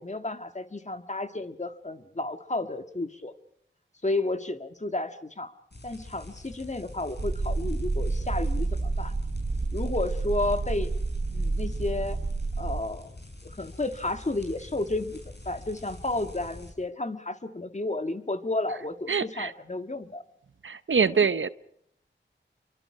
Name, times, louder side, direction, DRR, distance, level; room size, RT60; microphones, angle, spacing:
voice 1, 0.0-3.3 4.0-5.5 5.8-9.1 9.7-10.9 11.3-12.2 12.6-13.1 13.4-20.2, left 2 dB, 35° left, 1.7 m, -32 dB
sound 1, 5.7-16.7, left 1 dB, 55° left, 6.1 m, -45 dB
sound 2, 7.2-12.8, right 3 dB, 45° right, 1.2 m, -29 dB
voice 2, 19.1-19.5 20.6-21.5, right 5 dB, 75° right, 0.8 m, -24 dB
28.0 x 23.5 x 4.9 m
wide cardioid pair, 50°, 20 cm